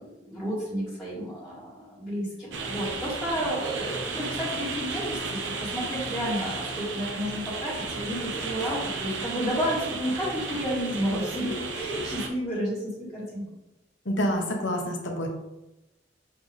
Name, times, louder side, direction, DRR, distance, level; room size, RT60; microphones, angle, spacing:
voice 1, 0.0-13.5, equal, ahead, -12 dB, 1.9 m, -31 dB
sound 1, 2.5-12.3, right 4 dB, 75° right, 0.9 m, -34 dB
voice 2, 14.0-15.3, equal, 75° left, 1 dB, 1.3 m, -27 dB
6.7 x 4.4 x 3.5 m, 0.97 s
head